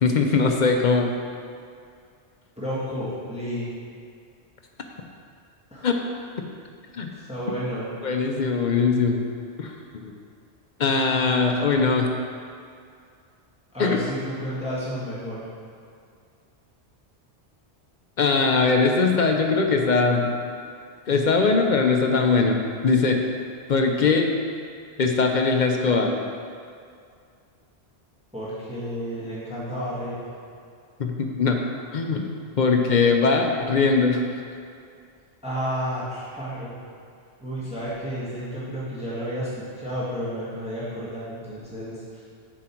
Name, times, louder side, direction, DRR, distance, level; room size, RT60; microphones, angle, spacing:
voice 1, 0.0-1.1 5.8-5.9 6.9-7.1 8.0-9.3 9.6-10.1 10.8-12.1 13.8-14.0 18.2-20.3 21.1-23.2 23.7-24.3 25.0-26.1 31.0-31.6 31.9-32.3 32.6-34.2, left 4 dB, 50° left, 3 dB, 0.6 m, -21 dB
voice 2, 2.6-3.7 5.7-5.9 7.1-7.9 13.7-15.4 28.3-30.2 35.4-36.7 37.4-42.2, equal, 5° right, -10 dB, 1.6 m, -31 dB
7.5 x 5.1 x 4.4 m, 2.3 s
omnidirectional pair, 1.1 m